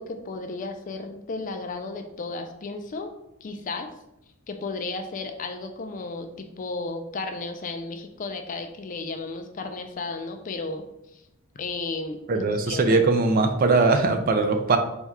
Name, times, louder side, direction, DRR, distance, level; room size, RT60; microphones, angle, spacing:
voice 1, 0.0-3.1 3.4-3.9 4.5-10.8 11.1-11.2 11.6-12.8, left 3 dB, 40° left, 6 dB, 0.4 m, -34 dB
voice 2, 12.3-14.8, right 3 dB, 40° right, 6 dB, 0.4 m, -20 dB
3.5 x 2.3 x 4.1 m, 0.85 s
head